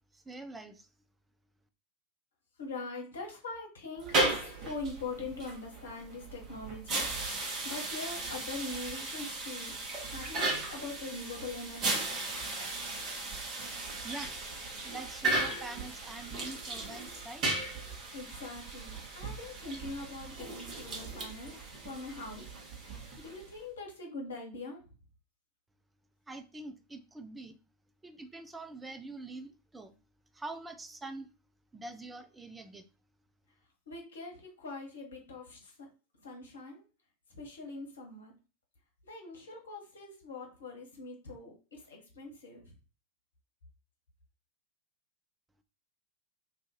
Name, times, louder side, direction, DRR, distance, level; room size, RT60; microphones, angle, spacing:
voice 1, 0.1-0.9 14.0-14.3 14.8-17.4 26.3-27.6 28.0-29.9 30.3-31.3 31.7-32.8, right 2 dB, 10° right, 0.4 m, -44 dB
voice 2, 2.6-7.0 7.6-9.8 10.0-12.1 18.1-22.5 23.2-24.8 33.9-35.7 36.2-36.8 37.3-38.3 39.0-42.7, left 3 dB, 65° left, 1.1 m, -43 dB
sound 1, 4.0-23.6, right 2 dB, 35° right, 1.1 m, -36 dB
2.7 x 2.5 x 3.8 m
figure-of-eight pair, 90°, 0 cm